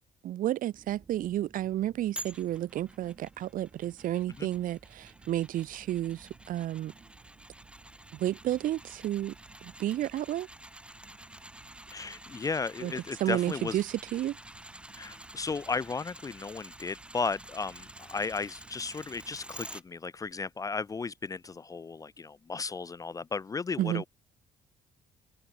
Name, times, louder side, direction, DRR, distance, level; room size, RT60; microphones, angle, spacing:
voice 1, 0.2-6.9 8.1-9.3 9.6-10.5 12.8-12.9 13.2-14.4 23.8-24.0, right 13 dB, 70° right, 0.8 m, -31 dB
sound 1, 0.7-19.8, right 5 dB, 35° right, 6.7 m, -58 dB
sound 2, 2.2-19.8 20.3-20.4, right 1 dB, 5° right, 6.2 m, -49 dB
voice 2, 11.9-13.8 15.0-24.1, left 4 dB, 25° left, 0.4 m, -35 dB
cardioid pair, 90°, 15 cm